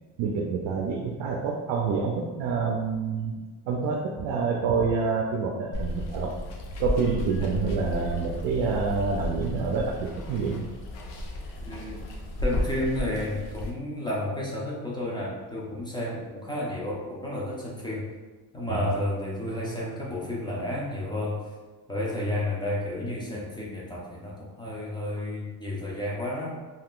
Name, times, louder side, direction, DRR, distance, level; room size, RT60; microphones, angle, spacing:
voice 1, 0.2-3.3 3.6-6.4 6.8-10.6 18.7-18.9, right 5 dB, 85° right, 0 dB, 0.5 m, -27 dB
Water, 5.7-13.7, left 1 dB, 80° left, 0.7 m, -33 dB
voice 2, 11.6-12.0 12.4-18.1 18.5-21.5 21.9-26.5, left 1 dB, 10° left, -5 dB, 0.4 m, -31 dB
2.5 x 2.4 x 3.5 m, 1.3 s
cardioid pair, 155°, 43 cm